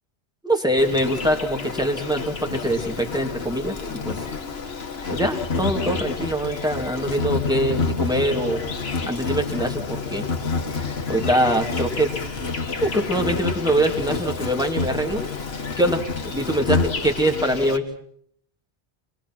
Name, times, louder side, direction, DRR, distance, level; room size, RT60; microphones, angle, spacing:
voice 1, 0.4-4.2 5.1-8.6 9.1-10.3 11.1-12.1 12.8-15.2 15.8-17.8, right 1 dB, 5° right, 2 dB, 2.7 m, -23 dB
Insect, 0.8-17.8, left 4 dB, 65° left, 1.7 m, -28 dB
25.5 x 21.0 x 6.1 m, 0.64 s
omnidirectional pair, 1.1 m